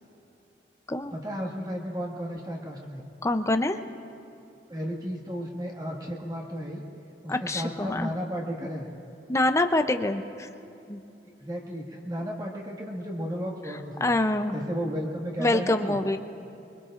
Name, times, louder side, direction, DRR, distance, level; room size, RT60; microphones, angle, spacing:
voice 1, 1.1-3.0 4.7-6.8 7.2-8.9 11.2-14.2 14.5-16.0, equal, 20° right, -2 dB, 1.8 m, -34 dB
voice 2, 3.2-3.8 7.3-8.1 9.3-10.5 10.9-11.0 14.0-14.5 15.4-16.2, left 2 dB, 15° left, 7 dB, 0.6 m, -25 dB
24.0 x 23.5 x 2.5 m, 2.8 s
head